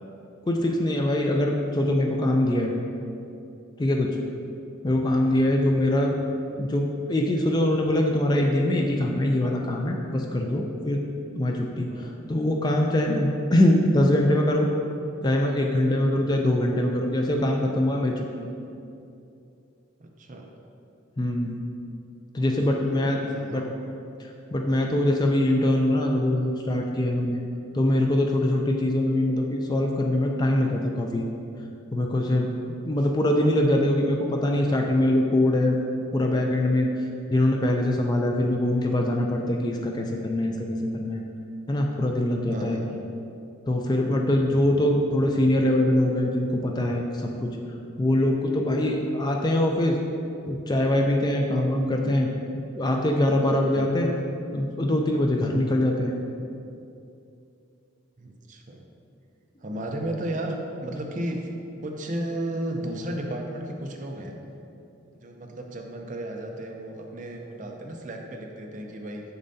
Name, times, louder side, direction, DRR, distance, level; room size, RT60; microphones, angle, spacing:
voice 1, 0.5-2.7 3.8-4.2 4.8-6.1 6.6-11.0 11.4-14.7 15.2-18.3 21.2-21.6 22.3-23.2 23.4-23.6 24.5-27.4 27.7-31.2 31.9-32.5 32.9-35.8 36.1-36.9 37.3-41.2 41.7-42.8 43.7-47.5 48.0-50.0 50.5-54.1 54.5-56.1, left 1 dB, 20° left, 1 dB, 0.3 m, -23 dB
voice 2, 20.0-20.5 22.4-23.7 42.5-42.9 53.7-53.9 58.2-58.9 59.6-61.5 61.8-64.4 65.2-69.2, right 1 dB, 35° right, 2 dB, 0.5 m, -34 dB
6.8 x 6.5 x 2.7 m, 2.7 s
head